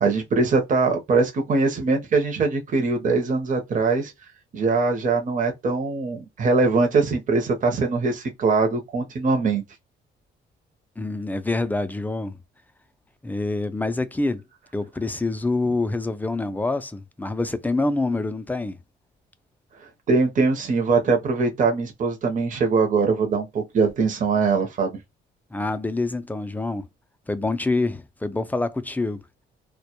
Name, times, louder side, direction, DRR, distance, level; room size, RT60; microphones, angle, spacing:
voice 1, 0.0-4.1 4.5-9.6 20.1-25.0, right 4 dB, 40° right, 0.7 m, -22 dB
voice 2, 11.0-12.4 13.2-14.4 14.7-18.8 25.5-26.9 27.3-29.2, left 2 dB, 10° left, 0.3 m, -26 dB
2.1 x 2.0 x 2.8 m
cardioid pair, 90°, 20 cm